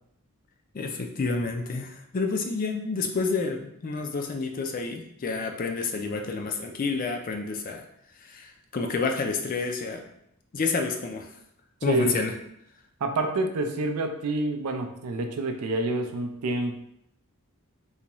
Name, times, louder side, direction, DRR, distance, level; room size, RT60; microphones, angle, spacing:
voice 1, 0.7-7.8 8.2-10.0 10.5-11.3 11.8-12.3, left 4 dB, 40° left, 4 dB, 0.3 m, -29 dB
voice 2, 13.0-16.7, right 2 dB, 85° right, 5 dB, 0.5 m, -27 dB
3.9 x 2.3 x 2.9 m, 0.77 s
head